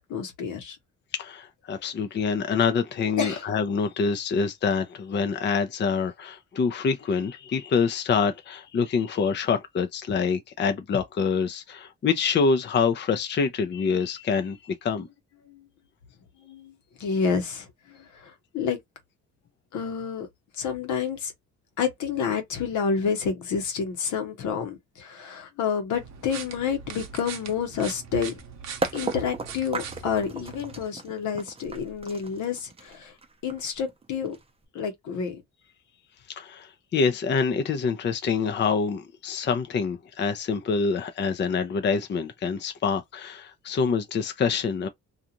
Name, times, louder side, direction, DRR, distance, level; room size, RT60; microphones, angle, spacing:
voice 1, 0.1-0.8 3.2-3.5 15.5-15.7 16.4-18.8 19.7-20.3 20.6-21.3 21.8-28.4 28.9-33.2 33.4-34.4 34.7-35.4, left 6 dB, 75° left, 1.0 m, -29 dB
voice 2, 1.1-15.1 36.3-44.9, left 5 dB, 35° left, 0.5 m, -26 dB
sound 1, 25.9-30.8, right 6 dB, 60° right, 0.7 m, -41 dB
sound 2, 28.8-34.6, right 3 dB, 20° right, 0.6 m, -35 dB
2.6 x 2.4 x 2.8 m
cardioid pair, 90°, 30 cm